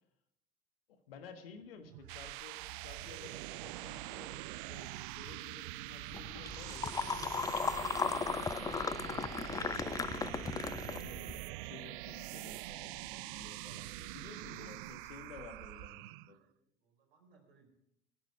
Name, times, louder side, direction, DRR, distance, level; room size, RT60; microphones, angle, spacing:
voice 1, 0.9-9.3 10.3-16.4, left 5 dB, 75° left, 7 dB, 1.6 m, -54 dB
sound 1, 1.8-16.4, right 19 dB, 60° right, 0.5 m, -44 dB
sound 2, 6.1-11.4, left 5 dB, 10° left, 0.4 m, -36 dB
voice 2, 16.3-17.7, right 4 dB, 80° right, 3 dB, 4.0 m, -68 dB
15.5 x 10.5 x 4.9 m, 0.79 s
figure-of-eight pair, 65°, 29 cm